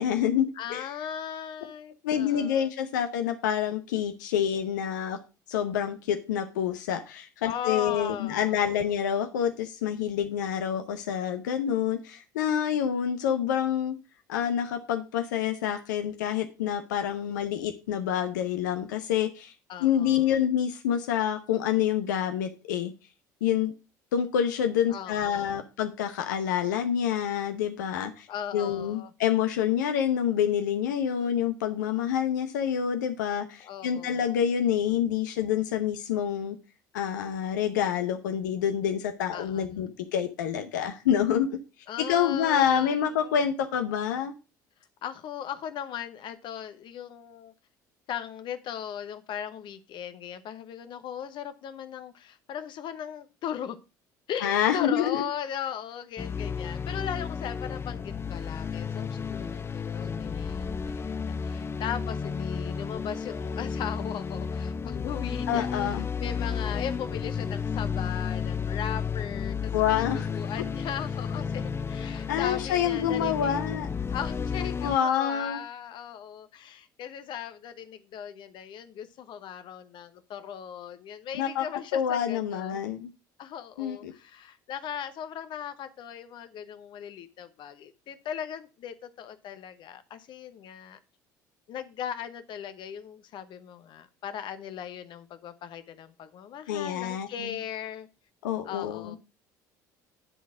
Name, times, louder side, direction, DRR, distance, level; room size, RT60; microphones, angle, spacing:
voice 1, 0.0-0.9 2.0-5.2 5.5-14.0 14.3-19.5 19.8-22.9 23.4-23.7 24.1-28.3 28.5-36.6 36.9-41.5 42.1-44.3 54.4-55.2 65.5-66.1 69.7-70.3 72.3-73.9 74.8-75.6 81.4-81.7 81.9-83.1 83.8-84.1 96.7-97.6 98.4-99.2, left 9 dB, 75° left, 0.8 m, -27 dB
voice 2, 0.6-2.7 7.4-8.8 19.7-20.4 24.9-25.6 28.3-29.1 33.6-34.2 39.3-39.7 41.9-43.4 45.0-47.5 48.1-53.8 54.3-70.0 70.3-73.6 74.1-82.8 83.4-91.0 91.7-98.1 98.6-99.2, left 9 dB, 55° left, 1.0 m, -38 dB
sound 1, 56.2-75.0, left 6 dB, 25° left, 0.5 m, -32 dB
10.0 x 4.0 x 6.1 m
hypercardioid pair, 60°, 10 cm